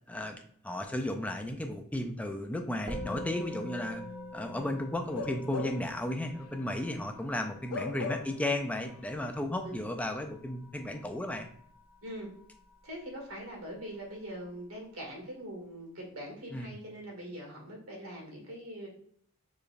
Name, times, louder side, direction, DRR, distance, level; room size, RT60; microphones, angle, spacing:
voice 1, 0.6-4.0 4.3-11.5 16.5-16.7, left 1 dB, 5° left, 5 dB, 0.3 m, -34 dB
Musical instrument, 2.9-12.4, left 1 dB, 25° right, 1.0 m, -45 dB
Bark / Livestock farm animals working animals, 5.1-6.0 6.4-6.6 7.7-8.5 8.8-9.0, left 4 dB, 85° left, 0.4 m, -38 dB
voice 2, 12.8-18.9, equal, 80° right, 0 dB, 2.0 m, -42 dB
6.8 x 3.2 x 2.4 m, 0.63 s
head